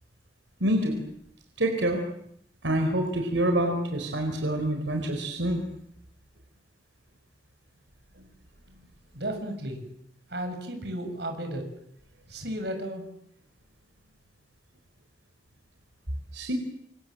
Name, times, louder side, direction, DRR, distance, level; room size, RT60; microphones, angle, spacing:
voice 1, 0.6-1.0 1.6-2.0 2.6-5.6 16.3-16.5, right 1 dB, 85° right, 4 dB, 4.4 m, -26 dB
voice 2, 9.1-9.8 10.3-11.7 12.3-13.0, right 1 dB, 60° right, 5 dB, 6.9 m, -33 dB
28.0 x 26.5 x 7.8 m, 0.72 s
head